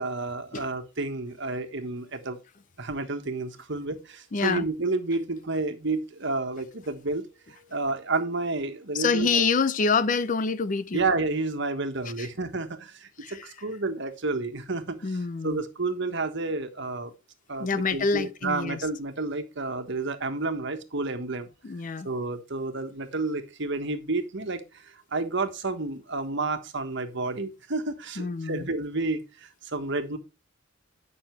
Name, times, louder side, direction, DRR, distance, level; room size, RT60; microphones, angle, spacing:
voice 1, 0.0-2.4 2.8-7.2 7.7-9.4 10.9-15.0 15.4-17.1 17.5-21.5 22.0-24.6 25.1-29.2 29.7-30.2, right 3 dB, 60° right, 1.5 m, -30 dB
voice 2, 4.3-4.6 8.9-11.1 12.2-12.3 13.2-13.5 15.0-15.6 17.6-18.9 21.6-22.1 28.2-28.7, left 4 dB, 40° left, 0.5 m, -26 dB
9.6 x 6.2 x 4.6 m
head